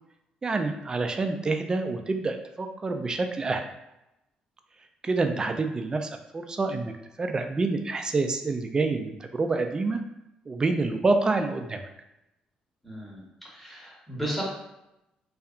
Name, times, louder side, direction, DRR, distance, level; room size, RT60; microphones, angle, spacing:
voice 1, 0.4-3.6 5.0-6.9 7.2-10.0 10.5-11.8, right 3 dB, 30° right, 6 dB, 0.3 m, -27 dB
voice 2, 12.8-14.4, right 1 dB, 5° left, -4 dB, 1.0 m, -35 dB
2.8 x 2.2 x 2.4 m, 0.90 s
cardioid pair, 80°, 3 cm